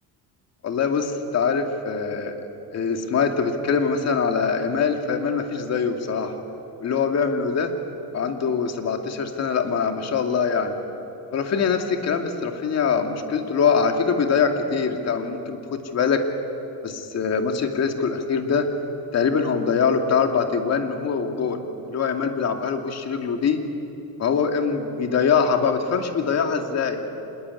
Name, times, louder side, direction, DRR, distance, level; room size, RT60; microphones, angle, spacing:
voice 1, 0.6-2.4 2.7-6.4 6.8-7.7 8.1-10.8 11.3-16.2 16.8-18.7 19.1-23.7 24.2-27.0, left 6 dB, 40° left, 5 dB, 2.5 m, -23 dB
26.0 x 20.5 x 9.8 m, 3.0 s
cardioid pair, 135°, 39 cm